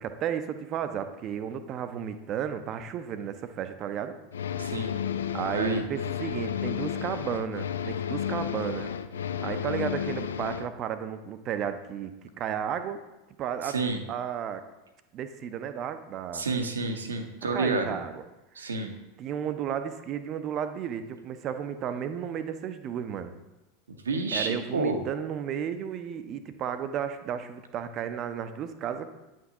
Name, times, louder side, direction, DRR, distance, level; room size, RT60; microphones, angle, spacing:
voice 1, 0.0-4.2 5.3-8.9 9.4-13.0 13.4-13.8 14.1-14.6 15.1-16.5 17.5-18.2 18.6-18.7 19.2-23.3 24.3-29.1, right 8 dB, 40° right, 10 dB, 0.5 m, -33 dB
sound 1, 4.3-10.7, left 9 dB, 70° left, 0.3 m, -32 dB
voice 2, 4.6-4.9 5.5-5.8 13.6-14.0 16.3-18.0 18.5-18.9 23.9-25.0, right 3 dB, 75° right, 6 dB, 0.8 m, -29 dB
9.2 x 6.0 x 2.8 m, 1.0 s
figure-of-eight pair, 80°, 0 cm